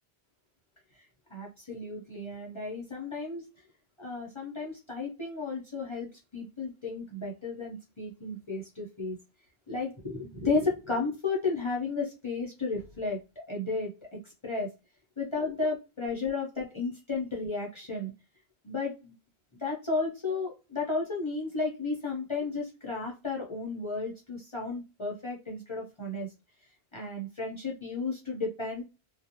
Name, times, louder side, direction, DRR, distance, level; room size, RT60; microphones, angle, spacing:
voice 1, 1.3-3.4 4.0-9.2 9.7-14.7 15.2-18.1 18.6-19.1 19.6-26.3 26.9-28.8, left 3 dB, 35° left, -2 dB, 0.6 m, -33 dB
2.4 x 2.0 x 2.8 m, 0.28 s
omnidirectional pair, 1.1 m